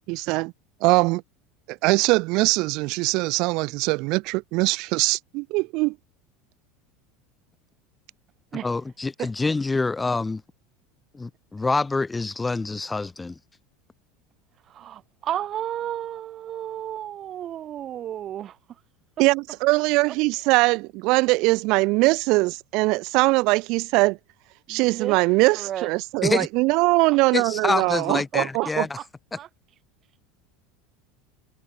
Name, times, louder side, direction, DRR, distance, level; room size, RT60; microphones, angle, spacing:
voice 1, 0.1-0.5 0.8-1.2 1.7-6.0 19.2-24.2 24.7-28.9, right 25 dB, 50° right, 0.6 m, -22 dB
voice 2, 8.6-10.4 11.1-13.4 26.2-26.5 27.3-29.0, left 3 dB, 10° left, 2.0 m, -26 dB
voice 3, 14.6-18.8 20.1-20.2 24.7-25.2 25.5-25.9 28.3-29.1 29.3-29.5, right 11 dB, 30° right, 2.8 m, -33 dB
supercardioid pair, 160°, 0 cm